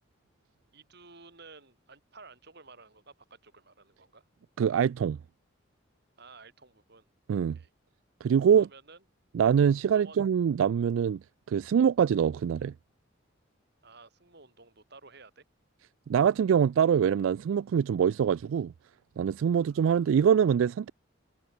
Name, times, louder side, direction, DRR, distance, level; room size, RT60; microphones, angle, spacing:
voice 1, 0.7-4.2 6.2-7.1 7.5-7.7 8.5-9.0 9.9-10.2 13.8-15.4 19.5-19.9, right 4 dB, 55° right, 4.7 m, -53 dB
voice 2, 4.6-5.2 7.3-7.6 8.2-8.7 9.3-11.2 11.5-12.7 16.1-18.7 19.2-20.9, right 8 dB, 85° right, 0.3 m, -24 dB
head